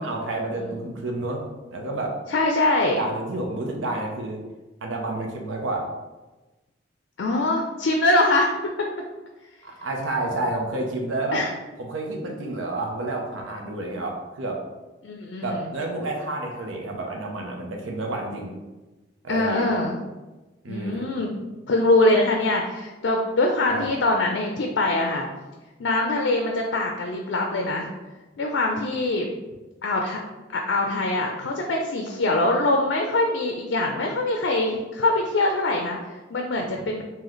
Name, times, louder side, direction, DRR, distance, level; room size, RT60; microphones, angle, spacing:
voice 1, 0.0-1.4 1.7-2.2 3.0-4.4 4.8-5.9 9.6-11.4 11.8-14.6 15.4-18.5 19.2-19.7 20.6-21.1 23.7-23.9 36.6-36.9, right 2 dB, 85° right, 1 dB, 0.6 m, -30 dB
voice 2, 2.3-3.0 7.2-8.9 11.3-11.5 15.0-15.6 19.3-20.0 20.7-25.3 25.8-27.9 28.4-29.4 29.8-30.2 30.5-37.0, left 2 dB, 65° left, 2 dB, 0.4 m, -23 dB
3.1 x 2.8 x 3.9 m, 1.1 s
head